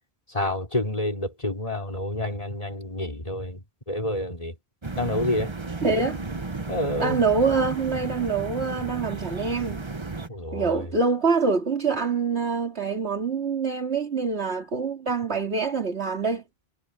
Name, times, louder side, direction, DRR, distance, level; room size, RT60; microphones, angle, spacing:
voice 1, 0.3-3.6 3.9-4.5 5.0-5.5 6.7-7.2 10.3-10.9, left 1 dB, 35° left, 3.8 m, -28 dB
sound 1, 4.8-10.3, right 3 dB, 25° right, 1.2 m, -33 dB
voice 2, 5.8-6.2 7.0-9.8 10.5-16.4, right 4 dB, 85° right, 2.8 m, -25 dB
omnidirectional pair, 1.1 m